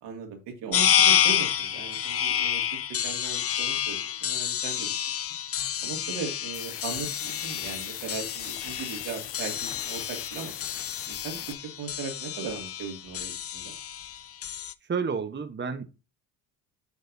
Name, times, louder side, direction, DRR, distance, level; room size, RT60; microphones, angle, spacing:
voice 1, 0.0-2.6 3.0-4.9 5.8-10.5 11.1-13.7, right 5 dB, 75° right, 3 dB, 2.4 m, -38 dB
sound 1, 0.7-14.7, left 9 dB, 35° left, 0.6 m, -29 dB
sound 2, 6.5-11.5, left 10 dB, 70° left, 1.2 m, -40 dB
voice 2, 14.8-15.8, right 5 dB, 25° right, 7 dB, 1.0 m, -30 dB
8.2 x 6.6 x 2.7 m, 0.29 s
supercardioid pair, 70°, 42 cm